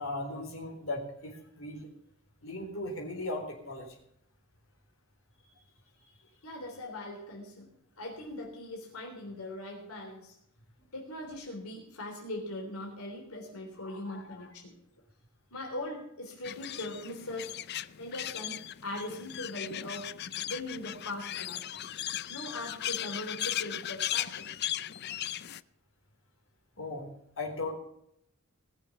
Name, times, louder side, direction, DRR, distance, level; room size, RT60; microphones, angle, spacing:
voice 1, 0.0-1.9 2.4-4.0 13.8-14.5 26.8-27.1 27.4-27.7, left 2 dB, 65° left, 0 dB, 4.0 m, -38 dB
voice 2, 6.4-10.3 10.9-14.8 15.5-17.6 18.0-20.1 20.5-21.6 22.3-24.5, left 1 dB, 90° left, 0 dB, 3.5 m, -40 dB
sound 1, 16.4-25.6, left 12 dB, 50° left, 0.5 m, -37 dB
19.5 x 7.0 x 7.0 m, 0.75 s
head